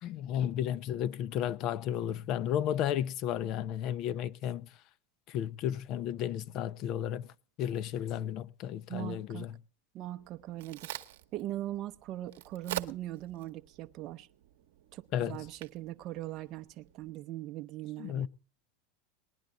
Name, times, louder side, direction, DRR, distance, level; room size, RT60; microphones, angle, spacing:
voice 1, 0.0-4.8 5.3-7.3 7.6-9.6 15.1-15.4 18.0-18.3, left 10 dB, 50° left, 0.7 m, -33 dB
voice 2, 8.9-9.5 9.9-11.0 11.3-14.3 14.9-18.3, right 14 dB, 50° right, 0.7 m, -40 dB
Crack, 10.2-17.1, right 12 dB, 75° right, 1.0 m, -46 dB
19.5 x 10.5 x 3.8 m
hypercardioid pair, 100°, 0 cm